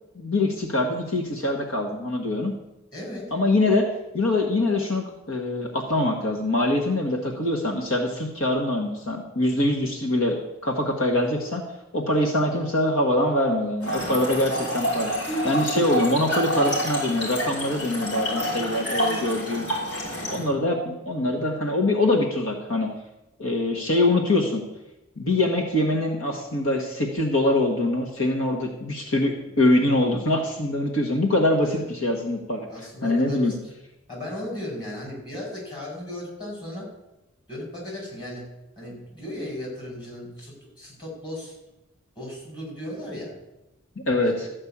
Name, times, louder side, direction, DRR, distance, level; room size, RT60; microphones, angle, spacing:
voice 1, 0.1-2.5 3.3-3.9 4.1-10.4 10.6-11.6 11.9-15.1 15.4-19.6 20.3-22.9 23.4-24.6 25.2-32.7 33.0-33.5 44.1-44.5, left 1 dB, 75° left, 1 dB, 1.5 m, -24 dB
voice 2, 2.9-3.3 9.5-9.7 16.5-16.7 20.1-20.5 29.6-29.7 31.6-31.8 32.7-33.6 34.1-36.9 37.5-38.5 38.8-41.6 42.1-43.3 44.2-44.3, left 1 dB, 20° left, -3 dB, 5.0 m, -36 dB
Trickle dribble / Fill (with liquid), 13.8-20.4, equal, 55° left, 5.4 m, -28 dB
13.5 x 5.4 x 8.6 m, 0.95 s
head